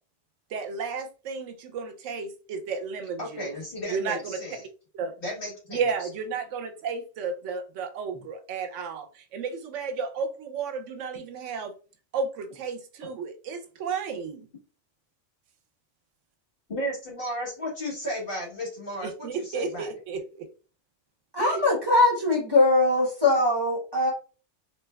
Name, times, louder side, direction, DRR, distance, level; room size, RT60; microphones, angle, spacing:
voice 1, 0.5-3.5 3.9-4.4 4.9-5.1 5.7-11.7 12.1-14.5 19.0-20.5 21.4-21.6, right 5 dB, 85° right, 0.9 m, -33 dB
voice 2, 3.2-4.6 5.2-5.8 13.0-13.1 16.7-19.9, equal, 50° left, 1.5 m, -34 dB
voice 3, 21.3-24.1, left 2 dB, 25° right, 0.9 m, -21 dB
3.2 x 2.8 x 2.2 m
omnidirectional pair, 1.2 m